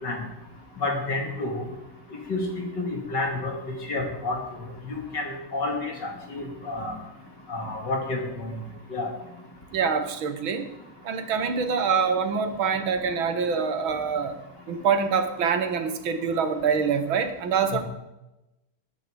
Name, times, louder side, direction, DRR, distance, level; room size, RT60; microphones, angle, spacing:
voice 1, 0.8-1.7 2.3-2.4 2.8-4.4 4.8-7.0 7.5-8.5 8.9-9.1 17.7-17.8, left 2 dB, 55° left, 1 dB, 3.5 m, -30 dB
voice 2, 9.7-10.7 11.0-14.4 14.7-17.8, right 6 dB, 70° right, 8 dB, 2.0 m, -25 dB
20.5 x 9.8 x 5.2 m, 0.96 s
omnidirectional pair, 2.3 m